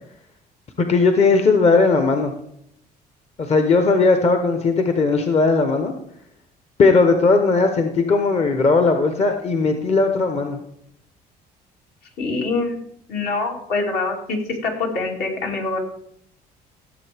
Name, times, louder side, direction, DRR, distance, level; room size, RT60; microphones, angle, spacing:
voice 1, 0.8-2.3 3.4-5.9 6.8-10.6, left 3 dB, 40° left, 6 dB, 1.0 m, -17 dB
voice 2, 12.2-12.8 13.1-15.8, left 3 dB, 70° left, 1 dB, 2.6 m, -24 dB
16.0 x 7.2 x 3.5 m, 0.73 s
cardioid pair, 110°, 17 cm